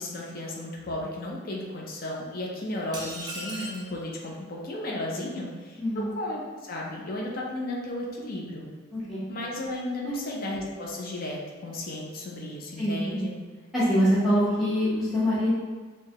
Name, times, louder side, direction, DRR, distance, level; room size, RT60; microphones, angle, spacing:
voice 1, 0.0-5.8 6.1-8.7 9.3-13.3, left 1 dB, 45° left, -2 dB, 0.5 m, -34 dB
sound 1, 2.9-3.9, right 1 dB, 20° right, 0.5 m, -37 dB
voice 2, 5.8-6.1 8.9-9.2 10.0-10.3 12.8-13.2 13.7-15.5, equal, ahead, -13 dB, 0.9 m, -24 dB
4.6 x 2.2 x 2.9 m, 1.4 s
head